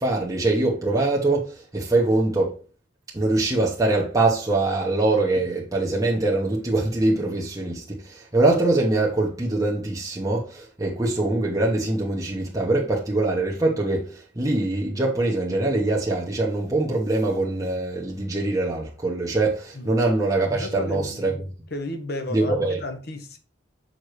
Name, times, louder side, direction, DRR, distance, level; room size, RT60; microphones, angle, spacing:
voice 1, 0.0-2.6 3.1-21.3 22.3-22.8, right 2 dB, 20° right, 1.1 m, -23 dB
voice 2, 20.6-21.2 21.7-23.4, left 1 dB, 55° left, 1.2 m, -33 dB
6.6 x 5.6 x 3.1 m
head